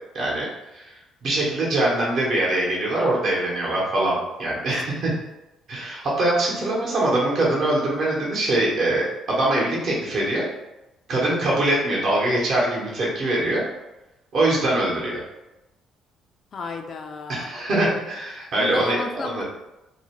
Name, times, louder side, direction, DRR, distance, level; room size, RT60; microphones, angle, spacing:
voice 1, 0.1-0.5 0.7-0.9 1.2-5.1 5.7-10.5 11.1-13.6 14.3-15.2 17.3-19.0 19.2-19.4, right 1 dB, 60° right, -5 dB, 0.9 m, -23 dB
voice 2, 16.5-17.5 18.6-19.4, left 4 dB, 50° left, 4 dB, 0.3 m, -33 dB
2.6 x 2.1 x 2.9 m, 0.96 s
cardioid pair, 85°, 0 cm